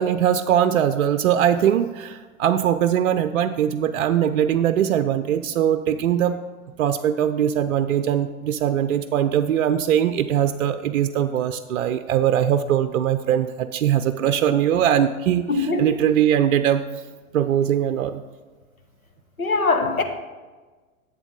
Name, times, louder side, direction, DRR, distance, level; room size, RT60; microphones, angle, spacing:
voice 1, 0.0-6.4 6.8-16.8 17.3-18.2, right 10 dB, 65° right, 10 dB, 0.5 m, -21 dB
voice 2, 15.5-15.9 19.4-20.0, left 3 dB, 85° left, 6 dB, 1.2 m, -21 dB
10.5 x 8.1 x 3.6 m, 1.3 s
figure-of-eight pair, 100°, 41 cm